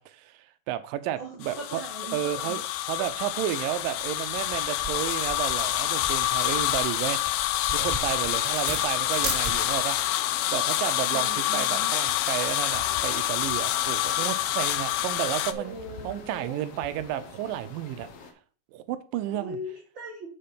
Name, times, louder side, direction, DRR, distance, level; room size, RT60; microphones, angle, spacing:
voice 1, 0.0-1.8 2.1-7.2 7.7-10.0 10.5-15.8 16.0-18.1 18.7-19.6, right 12 dB, 80° right, 2.1 m, -32 dB
voice 2, 1.2-2.6 11.0-11.9 15.5-16.6 19.3-20.3, right 1 dB, 60° right, 1.2 m, -40 dB
sound 1, 1.4-15.5, left 14 dB, 90° left, 2.5 m, -27 dB
sound 2, 3.8-9.9, right 3 dB, 20° right, 1.8 m, -39 dB
sound 3, 8.0-18.3, left 5 dB, 75° left, 1.4 m, -47 dB
7.6 x 5.6 x 5.1 m
omnidirectional pair, 4.2 m